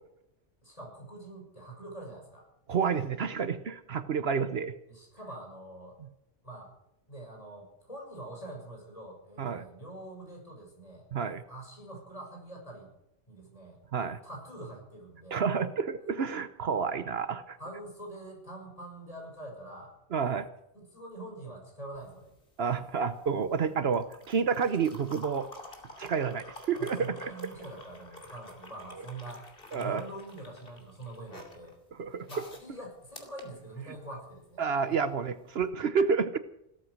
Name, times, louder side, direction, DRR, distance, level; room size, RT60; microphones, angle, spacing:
voice 1, 0.6-2.4 4.9-6.0 6.4-6.7 7.1-11.1 11.5-12.9 13.3-13.8 14.2-15.4 17.6-19.9 20.7-22.3 26.8-31.7 32.3-34.6, right 2 dB, 35° left, -1 dB, 6.6 m, -44 dB
voice 2, 2.7-4.7 9.4-9.7 11.1-11.4 13.9-14.2 15.3-17.6 20.1-20.5 22.6-25.5 26.0-27.3 29.7-30.0 32.0-32.3 34.6-36.4, right 6 dB, 65° right, 12 dB, 1.1 m, -29 dB
sound 1, 21.9-34.3 35.5-35.7, left 1 dB, 55° left, 2.9 m, -50 dB
17.0 x 13.5 x 6.3 m, 0.80 s
omnidirectional pair, 1.1 m